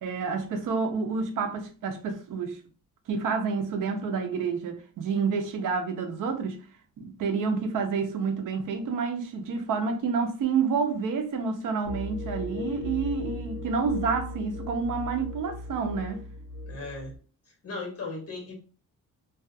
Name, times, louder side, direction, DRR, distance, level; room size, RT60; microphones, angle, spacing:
voice 1, 0.0-2.6 3.1-6.6 7.0-16.2, right 5 dB, 75° right, 0.6 m, -29 dB
sound 1, 11.8-17.2, left 2 dB, 65° left, 0.8 m, -37 dB
voice 2, 16.7-17.1 17.6-18.5, left 3 dB, 50° left, 1.1 m, -36 dB
2.4 x 2.3 x 2.5 m
wide cardioid pair, 140°, 32 cm